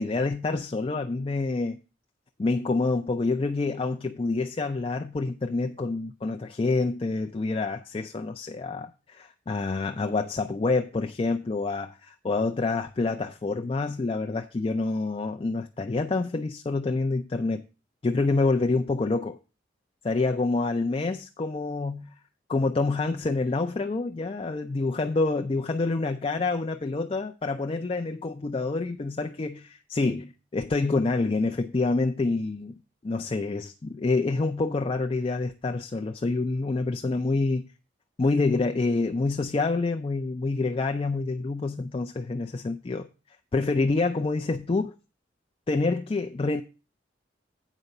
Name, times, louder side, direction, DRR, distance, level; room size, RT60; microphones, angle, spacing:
voice 1, 0.0-1.8 2.4-17.6 18.0-19.4 20.0-22.1 22.5-32.7 33.0-37.7 38.2-43.1 43.5-44.9 45.7-46.6, left 3 dB, 30° left, 0.4 m, -27 dB
8.3 x 4.9 x 6.5 m
head